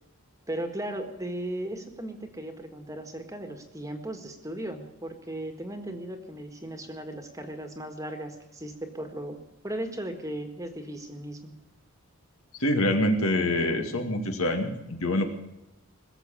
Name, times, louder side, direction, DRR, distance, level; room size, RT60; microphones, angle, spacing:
voice 1, 0.5-9.4 9.6-11.5, right 1 dB, 15° right, 6 dB, 1.6 m, -36 dB
voice 2, 12.6-15.2, left 1 dB, 70° left, 5 dB, 2.2 m, -25 dB
21.0 x 7.6 x 9.0 m, 0.93 s
head